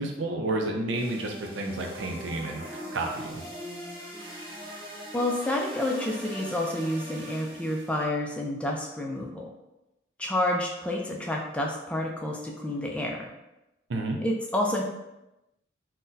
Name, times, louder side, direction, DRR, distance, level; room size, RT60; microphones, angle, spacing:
voice 1, 0.0-3.4 13.9-14.2, right 2 dB, 80° right, 2 dB, 0.5 m, -31 dB
sound 1, 0.9-8.0, equal, 25° right, 0.6 m, -41 dB
voice 2, 5.1-9.5 10.2-13.3 14.2-14.8, left 1 dB, 5° left, -1 dB, 0.3 m, -29 dB
3.8 x 2.1 x 2.6 m, 0.94 s
head